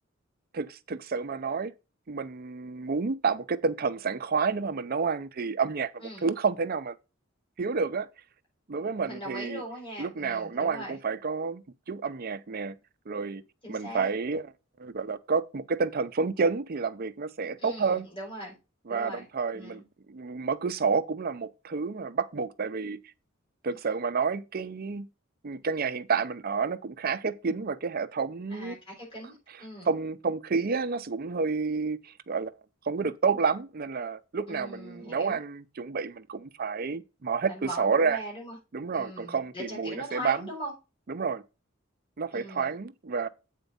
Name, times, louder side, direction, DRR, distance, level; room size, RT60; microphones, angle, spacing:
voice 1, 0.5-1.7 2.1-5.9 6.2-7.0 7.6-8.1 8.7-9.6 10.0-11.6 11.9-12.8 13.1-13.4 13.7-14.4 14.8-18.1 18.9-19.8 20.1-23.0 23.6-25.1 25.4-28.8 29.9-32.5 32.9-38.2 38.7-40.5 41.1-41.4 42.2-43.3, right 5 dB, 45° right, 0.6 m, -29 dB
voice 2, 9.0-11.0 13.6-14.1 17.6-18.5 18.9-19.3 19.5-19.8 28.5-29.9 34.5-35.4 37.5-38.6 38.9-40.7 42.3-42.7, equal, 25° left, 5.2 m, -40 dB
8.2 x 4.4 x 5.3 m
head